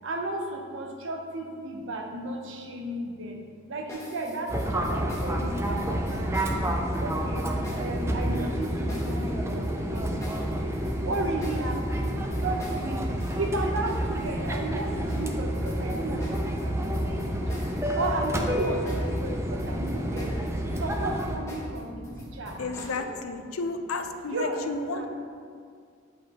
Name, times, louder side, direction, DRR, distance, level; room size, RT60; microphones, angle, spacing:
voice 1, 0.0-3.4 3.7-6.6 7.0-7.5 7.8-10.7 11.0-12.1 12.4-13.1 13.4-17.1 17.5-17.6 17.9-20.4 20.8-23.1 24.3-25.1, right 2 dB, 60° right, 3 dB, 0.6 m, -34 dB
sound 1, 3.9-19.2 19.5-23.0, equal, 15° left, 0.9 m, -44 dB
Fixed-wing aircraft airplane, 4.5-21.4, equal, 15° right, 0.4 m, -29 dB
voice 2, 22.6-25.1, left 3 dB, 80° left, 6 dB, 0.5 m, -32 dB
8.1 x 5.0 x 2.9 m, 2.2 s
head